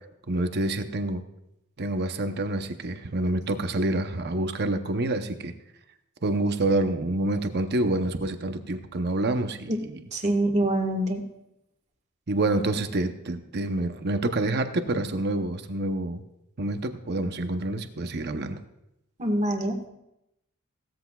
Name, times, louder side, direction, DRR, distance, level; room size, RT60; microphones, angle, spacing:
voice 1, 0.3-1.2 1.8-5.5 6.2-9.9 12.3-16.2 16.6-18.6, right 2 dB, 50° right, 7 dB, 0.8 m, -27 dB
voice 2, 10.1-11.2 19.2-19.8, right 1 dB, 30° right, 4 dB, 1.6 m, -25 dB
17.5 x 14.0 x 2.3 m, 0.86 s
head